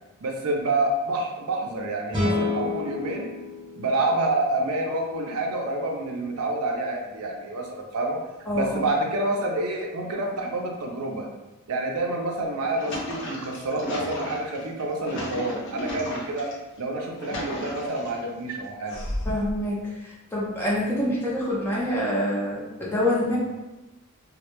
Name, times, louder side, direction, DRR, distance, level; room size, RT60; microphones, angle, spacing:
voice 1, 0.2-3.3 3.8-8.2 8.5-11.3 11.7-16.5 16.8-19.0, right 2 dB, 75° right, 1 dB, 0.5 m, -28 dB
sound 1, 2.1-5.4, left 2 dB, 20° right, 0.8 m, -30 dB
voice 2, 8.5-8.9 19.2-23.4, left 1 dB, 10° left, -6 dB, 0.5 m, -26 dB
sound 2, 12.6-16.5 17.0-18.2 18.9-19.6, left 1 dB, 55° left, 0.5 m, -34 dB
2.1 x 2.0 x 2.9 m, 1.0 s
head